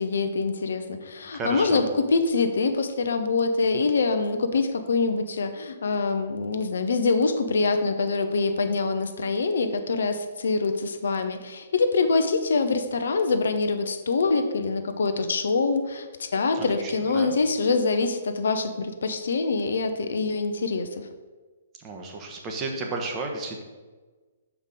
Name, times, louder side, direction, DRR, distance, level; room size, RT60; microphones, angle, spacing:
voice 1, 0.0-21.0, left 4 dB, 65° left, 8 dB, 0.6 m, -25 dB
voice 2, 1.3-1.8 16.5-17.4 21.8-23.6, right 3 dB, 25° right, 2 dB, 1.1 m, -33 dB
6.5 x 4.8 x 5.2 m, 1.3 s
figure-of-eight pair, 120°, 0 cm